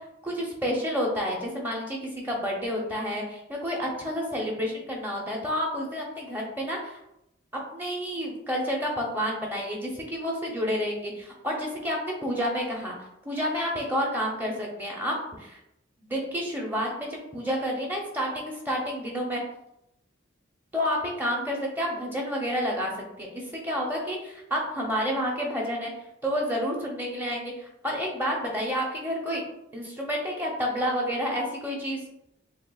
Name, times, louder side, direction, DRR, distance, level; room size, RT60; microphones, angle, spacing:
voice 1, 0.2-7.0 7.7-12.9 13.2-15.6 16.0-19.4 20.7-25.9 26.2-29.4 29.7-32.0, equal, 10° right, -1 dB, 0.7 m, -30 dB
6.6 x 2.4 x 2.3 m, 0.83 s
head